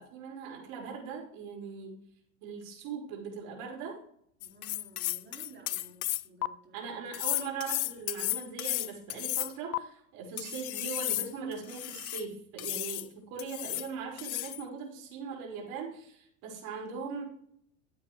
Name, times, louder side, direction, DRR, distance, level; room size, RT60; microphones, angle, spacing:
voice 1, 0.0-1.9 2.4-4.0 6.7-17.2, right 5 dB, 55° right, -1 dB, 4.9 m, -40 dB
sound 1, 4.4-6.5 7.1-9.8 10.4-12.2 12.6-13.1 13.4-13.9 14.2-14.6, left 15 dB, 85° left, 0.6 m, -33 dB
voice 2, 4.4-6.8, right 2 dB, 25° right, -2 dB, 5.0 m, -54 dB
14.0 x 8.7 x 3.3 m, 0.67 s
hypercardioid pair, 90°, 42 cm